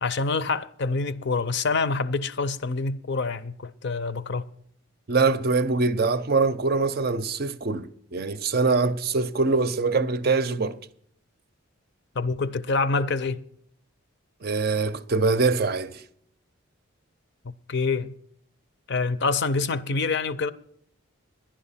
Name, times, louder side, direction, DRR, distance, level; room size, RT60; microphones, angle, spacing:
voice 1, 0.0-4.4 12.2-13.4 17.4-18.1 18.9-20.5, left 4 dB, 50° left, 0.5 m, -26 dB
voice 2, 5.1-10.8 14.4-16.0, right 4 dB, 45° right, 0.5 m, -23 dB
11.5 x 10.5 x 5.6 m
head